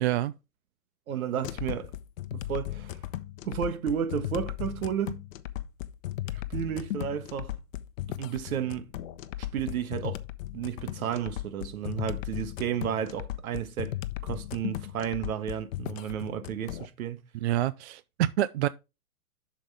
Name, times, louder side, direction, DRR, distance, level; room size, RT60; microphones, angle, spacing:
voice 1, 0.0-0.3 17.4-18.7, right 14 dB, 50° right, 0.4 m, -27 dB
voice 2, 1.1-1.9 2.3-3.0 3.4-5.2 6.3-7.6 8.2-9.0 9.4-10.2 10.5-14.0 14.2-17.2, right 9 dB, 65° right, 1.4 m, -32 dB
sound 1, 1.4-16.9, left 14 dB, 60° left, 0.9 m, -36 dB
7.5 x 6.4 x 3.4 m
hypercardioid pair, 125°, 45 cm